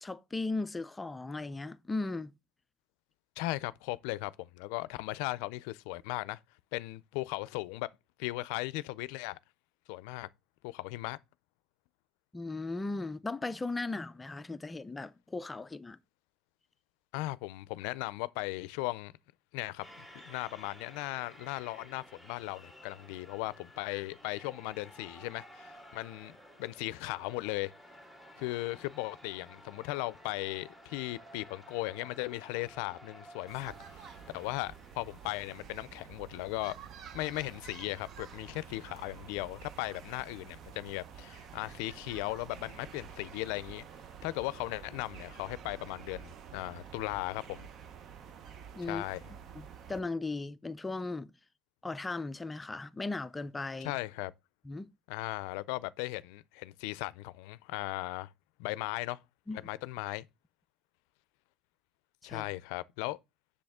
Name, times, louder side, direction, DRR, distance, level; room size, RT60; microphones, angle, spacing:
voice 1, 0.0-2.3 12.3-16.0 48.8-49.0 49.6-51.3 51.8-53.9 54.7-54.9 59.5-59.6 62.2-62.4, left 3 dB, 15° left, 0.4 m, -37 dB
voice 2, 3.4-6.4 6.7-7.9 8.2-9.4 9.9-10.3 10.6-11.2 17.1-19.1 19.5-27.7 28.4-33.7 34.3-36.7 37.1-43.9 44.2-47.7 48.8-49.2 53.8-54.3 55.1-58.3 58.6-59.2 59.5-60.3 62.2-63.2, left 19 dB, 80° left, 0.4 m, -37 dB
sound 1, 19.8-36.0, equal, 10° right, 2.0 m, -54 dB
sound 2, 33.5-50.0, right 7 dB, 45° right, 0.7 m, -49 dB
7.8 x 6.6 x 3.6 m
cardioid pair, 130°, 0 cm